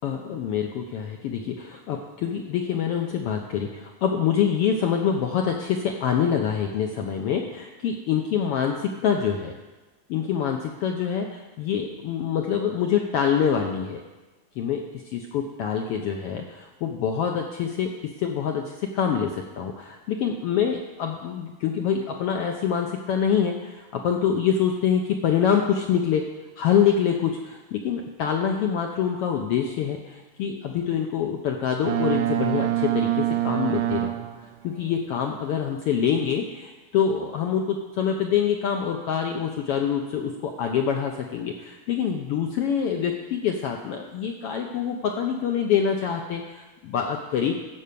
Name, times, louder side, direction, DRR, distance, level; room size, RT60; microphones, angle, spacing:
voice 1, 0.0-9.6 10.1-14.0 14.6-26.3 26.6-34.1 34.6-47.5, left 8 dB, 80° left, 3 dB, 1.3 m, -25 dB
Boat Water vehicle, 31.9-34.6, right 13 dB, 90° right, 2.2 m, -25 dB
14.5 x 5.6 x 6.7 m, 1.2 s
omnidirectional pair, 3.4 m